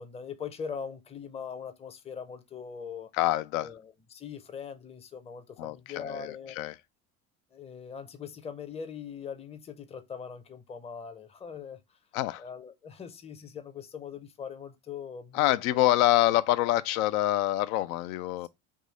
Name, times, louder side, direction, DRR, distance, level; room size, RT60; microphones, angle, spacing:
voice 1, 0.0-3.1 3.6-6.6 7.5-12.0 12.4-15.9 18.4-18.5, left 6 dB, 15° left, 0.6 m, -41 dB
voice 2, 3.1-3.7 5.6-6.7 12.1-12.4 15.3-18.5, left 15 dB, 70° left, 0.5 m, -26 dB
3.6 x 2.7 x 4.0 m
hypercardioid pair, 65°, 44 cm